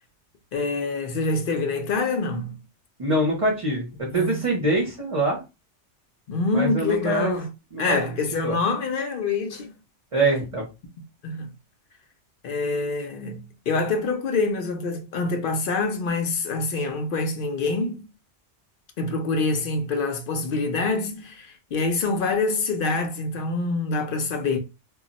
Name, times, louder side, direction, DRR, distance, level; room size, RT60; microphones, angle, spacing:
voice 1, 0.5-2.6 4.1-4.4 6.3-7.5 7.8-9.7 11.2-11.5 12.4-18.1 19.0-24.6, left 3 dB, 60° left, 0.6 m, -26 dB
voice 2, 3.0-5.4 6.5-7.4 7.7-8.0 8.4-8.6 10.1-10.6, right 2 dB, 35° right, 0.7 m, -24 dB
2.3 x 2.1 x 3.8 m
omnidirectional pair, 1.2 m